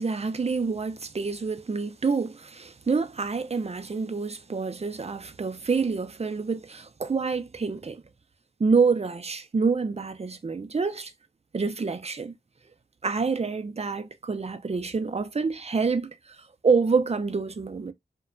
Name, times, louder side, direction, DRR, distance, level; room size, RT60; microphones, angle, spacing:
voice 1, 0.0-8.0 8.6-11.1 11.5-12.3 13.0-17.9, right 4 dB, 35° right, 0.4 m, -27 dB
2.8 x 2.2 x 2.4 m
wide cardioid pair, 55°, 18 cm